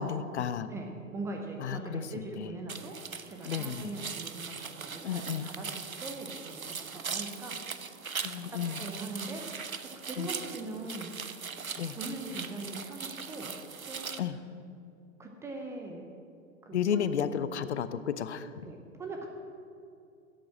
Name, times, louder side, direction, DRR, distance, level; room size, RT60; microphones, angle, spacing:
voice 1, 0.0-0.7 1.6-2.0 2.4-2.5 3.5-3.9 5.0-5.4 8.2-8.8 10.2-10.3 11.8-12.0 14.2-14.4 16.7-18.5, left 8 dB, 55° left, 13 dB, 0.6 m, -32 dB
voice 2, 0.7-3.0 3.3-7.6 8.3-9.7 9.9-11.1 11.9-13.5 13.9-14.4 15.2-16.0 16.6-17.0 18.6-19.3, right 2 dB, 5° right, 2 dB, 0.5 m, -41 dB
sound 1, 2.7-14.2, right 5 dB, 90° right, 0.7 m, -40 dB
11.0 x 7.7 x 7.3 m, 2.5 s
figure-of-eight pair, 105°, 40 cm